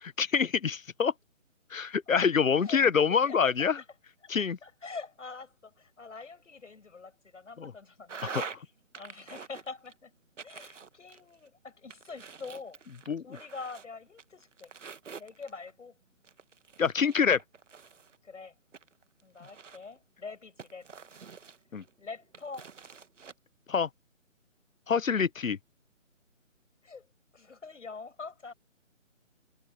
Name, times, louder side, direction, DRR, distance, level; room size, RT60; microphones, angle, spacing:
voice 1, 0.0-1.1 1.7-3.8 4.3-4.6 7.6-7.7 8.2-8.4 13.1-13.2 16.8-17.4 21.7-21.8 23.7-23.9 24.9-25.6, left 6 dB, 90° left, 0.9 m, -26 dB
voice 2, 3.1-3.8 4.2-4.3 4.6-8.5 8.9-10.1 10.4-12.8 13.2-14.7 15.2-15.9 18.2-18.5 19.2-20.9 22.0-22.7 26.8-27.1 27.3-28.5, left 4 dB, 65° left, 6.8 m, -44 dB
sound 1, 8.1-8.6 8.9-9.9 10.4-11.5 11.9-13.9 14.2-15.7 16.2-18.2 18.7-20.0 20.6-21.9 22.3-23.3, right 6 dB, 65° right, 1.5 m, -45 dB
figure-of-eight pair, 155°, 39 cm